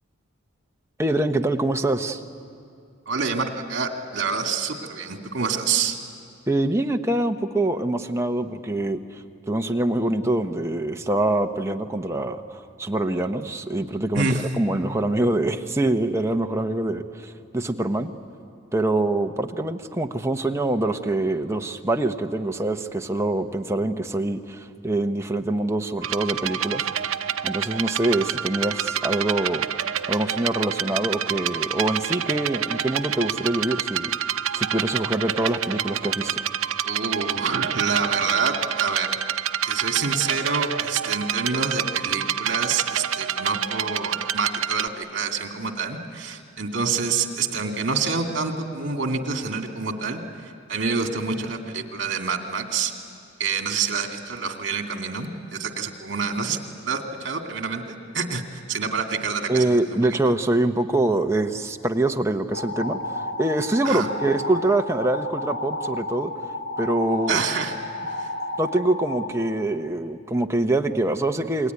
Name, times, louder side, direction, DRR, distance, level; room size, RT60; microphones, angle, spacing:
voice 1, 1.0-2.2 6.5-18.1 18.7-26.9 27.4-29.7 30.1-34.1 34.5-36.4 59.5-66.3 66.8-67.4 68.6-71.7, right 2 dB, 15° right, 5 dB, 0.9 m, -24 dB
voice 2, 3.1-6.0 14.1-14.5 36.8-39.1 39.6-52.9 53.4-56.6 56.9-59.8 63.8-64.1 67.3-67.7 68.2-68.3, right 5 dB, 55° right, 3 dB, 2.4 m, -27 dB
sound 1, 26.0-44.9, right 9 dB, 75° right, 0.7 m, -28 dB
sound 2, 62.5-69.3, left 2 dB, 55° left, 3.4 m, -32 dB
28.0 x 22.0 x 9.6 m, 2.4 s
head